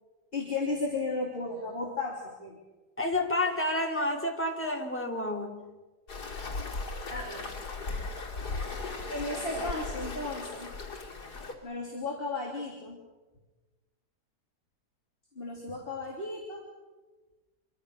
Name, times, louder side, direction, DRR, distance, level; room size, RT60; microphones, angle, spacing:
voice 1, 0.3-2.6 7.1-7.5 9.1-10.7 11.6-13.0 15.4-16.6, left 3 dB, 35° left, -1 dB, 3.5 m, -34 dB
voice 2, 3.0-5.7, left 1 dB, 5° left, 2 dB, 2.9 m, -30 dB
Waves surf, 6.1-11.5, left 3 dB, 80° left, 3.8 m, -37 dB
25.5 x 25.0 x 6.6 m, 1.2 s
omnidirectional pair, 1.7 m